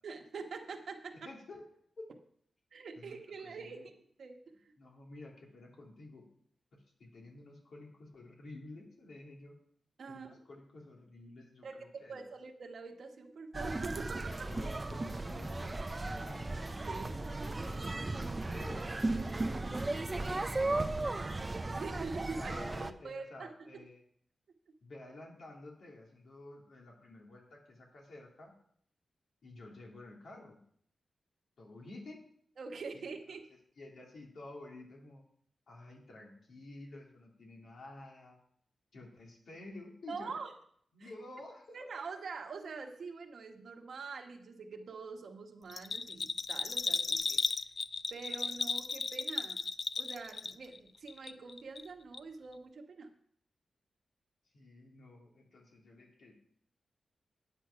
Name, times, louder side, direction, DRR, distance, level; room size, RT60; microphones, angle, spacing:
voice 1, 0.0-1.3 2.7-3.9 4.2-4.7 10.0-10.4 11.6-14.5 16.8-17.2 21.7-22.6 23.0-23.8 32.6-33.4 40.1-40.5 41.0-41.1 41.7-47.4 48.1-49.7 50.0-53.1, right 4 dB, 70° right, 3 dB, 1.3 m, -45 dB
voice 2, 1.2-1.6 3.0-3.9 4.8-6.2 6.7-9.6 10.1-12.2 13.9-16.5 17.2-17.8 18.2-18.9 20.3-21.0 22.4-24.0 24.8-28.5 29.4-30.6 31.6-32.2 32.9-33.4 33.8-35.2 35.7-38.4 38.9-40.3 40.9-41.8 54.5-56.3, left 2 dB, 75° left, -1 dB, 2.6 m, -51 dB
sound 1, 13.5-22.9, right 2 dB, 25° right, 0.6 m, -36 dB
sound 2, 13.9-20.2, left 2 dB, 35° left, 1.8 m, -54 dB
Bell, 45.7-50.8 51.1-51.9 52.1-52.2, left 4 dB, 50° left, 0.4 m, -35 dB
9.2 x 8.2 x 5.7 m, 0.64 s
wide cardioid pair, 110°, 0 cm